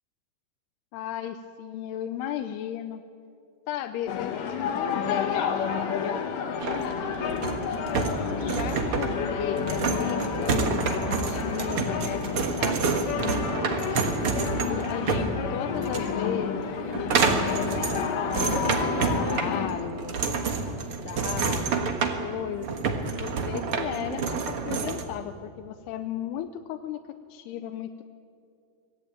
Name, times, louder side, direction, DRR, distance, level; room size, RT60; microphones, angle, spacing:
voice 1, 0.9-3.0 3.7-5.5 5.7-7.4 8.4-13.5 14.3-17.2 17.5-18.5 19.0-20.7 21.0-21.8 22.2-22.7 23.2-27.0 27.3-28.0, left 10 dB, 80° left, 7 dB, 2.7 m, -35 dB
sound 1, 4.1-19.7, left 7 dB, 60° left, 2.8 m, -30 dB
sound 2, 6.6-25.0, right 5 dB, 60° right, 1.4 m, -29 dB
25.5 x 17.5 x 8.8 m, 2.4 s
omnidirectional pair, 4.8 m